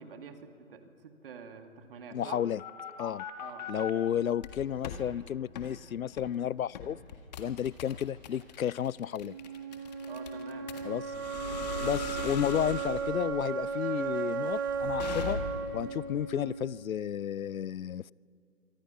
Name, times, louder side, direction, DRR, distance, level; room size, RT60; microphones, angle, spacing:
voice 1, 0.0-2.4 3.4-3.6 10.0-11.2, right 6 dB, 40° right, 6 dB, 2.1 m, -47 dB
voice 2, 2.1-2.6 3.0-3.2 3.7-7.0 7.4-9.4 10.8-11.0 11.8-15.4 15.7-18.1, left 9 dB, 85° left, 25 dB, 0.5 m, -32 dB
sound 1, 2.1-3.9 4.4-5.0 5.6-5.7 6.2-6.4 6.8-15.8, left 6 dB, 30° left, 1.7 m, -40 dB
sound 2, 9.2-17.2, right 5 dB, 15° right, 0.7 m, -35 dB
26.0 x 24.5 x 5.7 m, 2.4 s
figure-of-eight pair, 150°, 40 cm